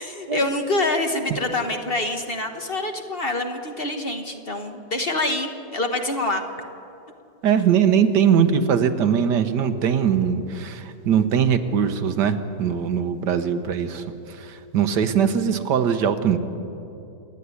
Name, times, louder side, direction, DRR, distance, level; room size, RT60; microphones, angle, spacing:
voice 1, 0.0-6.4, left 2 dB, 35° left, 5 dB, 1.3 m, -26 dB
voice 2, 7.4-16.4, right 7 dB, 80° right, 9 dB, 1.6 m, -21 dB
27.5 x 9.9 x 9.7 m, 2.8 s
omnidirectional pair, 1.8 m